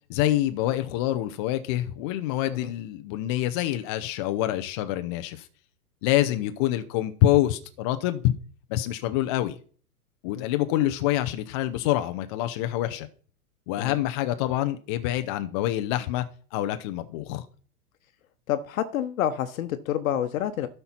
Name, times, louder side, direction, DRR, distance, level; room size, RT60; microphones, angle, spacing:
voice 1, 0.1-5.5 6.0-8.3 8.7-9.6 10.2-13.1 13.7-16.3 16.5-17.4, left 14 dB, 20° left, 0.3 m, -26 dB
voice 2, 18.5-20.7, left 10 dB, 60° left, 0.9 m, -28 dB
12.0 x 4.4 x 5.6 m
hypercardioid pair, 105°, 46 cm